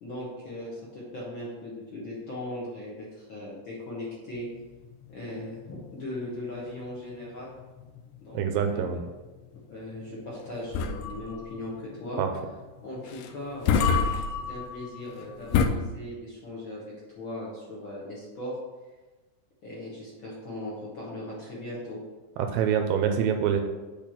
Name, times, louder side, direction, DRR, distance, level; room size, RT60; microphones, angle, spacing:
voice 1, 0.0-4.5 5.1-7.5 8.2-8.8 9.7-12.2 12.8-14.0 14.5-18.6 19.6-22.0, left 1 dB, 70° left, -7 dB, 1.1 m, -38 dB
sound 1, 4.3-15.7, left 6 dB, 90° left, 2.7 m, -31 dB
voice 2, 8.3-9.0 12.2-12.3 22.4-23.6, right 8 dB, 80° right, 5 dB, 2.1 m, -25 dB
8.4 x 3.5 x 5.8 m, 1.2 s
omnidirectional pair, 4.6 m